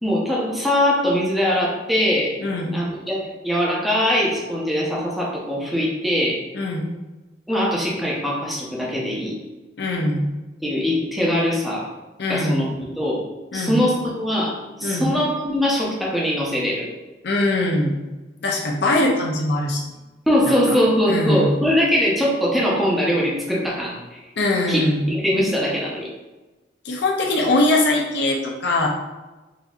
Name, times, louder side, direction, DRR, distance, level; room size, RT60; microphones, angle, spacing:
voice 1, 0.0-2.3 2.7-6.4 7.5-9.4 10.6-11.9 12.3-13.2 13.5-14.5 14.8-16.9 20.3-24.2 24.7-26.1, equal, ahead, -5 dB, 0.6 m, -22 dB
voice 2, 2.4-2.8 6.5-6.9 9.8-10.3 12.2-12.6 13.5-13.8 14.8-15.1 17.2-18.0 18.4-19.8 20.5-20.8 21.1-21.6 24.4-25.1 26.8-28.9, left 1 dB, 60° left, -1 dB, 0.5 m, -21 dB
4.0 x 2.7 x 2.3 m, 1.1 s
head